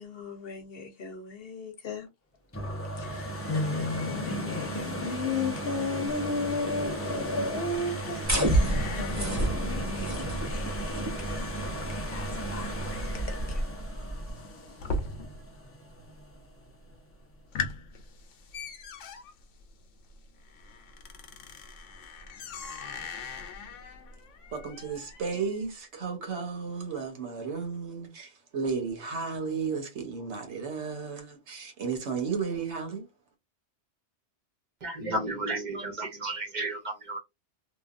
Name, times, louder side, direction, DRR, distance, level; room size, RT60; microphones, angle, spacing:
voice 1, 0.0-2.1 3.0-11.7 11.9-13.0 13.3-13.6, left 3 dB, 55° left, 0.9 m, -34 dB
sound 1, 2.5-16.2 16.7-16.8, right 1 dB, 20° left, 0.4 m, -36 dB
sound 2, 6.9-15.6 15.9-16.5 16.9-17.0 17.3-25.6, left 3 dB, 85° left, 1.0 m, -41 dB
sound 3, 8.3-14.3, right 1 dB, 15° right, 0.7 m, -30 dB
voice 2, 24.5-33.0, right 5 dB, 70° right, 1.2 m, -33 dB
voice 3, 34.8-37.2, right 2 dB, 40° right, 0.9 m, -33 dB
2.9 x 2.4 x 2.4 m
omnidirectional pair, 1.2 m